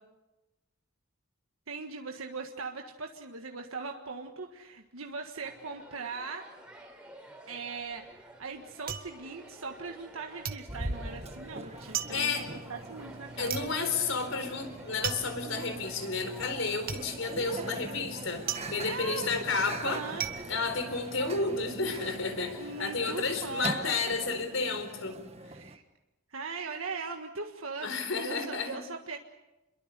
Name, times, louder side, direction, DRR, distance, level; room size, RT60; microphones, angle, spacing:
voice 1, 1.7-6.5 7.5-13.5 18.8-20.2 22.6-24.0 25.5-25.8 26.3-29.2, right 4 dB, 90° right, 3 dB, 1.6 m, -40 dB
sound 1, 5.3-24.4, right 1 dB, 5° right, 3.8 m, -51 dB
sound 2, 7.8-10.1 10.4-21.6 21.9-22.5, right 8 dB, 45° right, 1.4 m, -39 dB
Microwave oven, 10.7-25.8, right 2 dB, 30° right, 1.5 m, -42 dB
voice 2, 12.1-12.5 13.4-18.4 18.7-20.0 20.5-25.2 27.8-28.8, left 4 dB, 75° left, 8 dB, 4.3 m, -31 dB
28.5 x 22.5 x 6.8 m, 1.0 s
head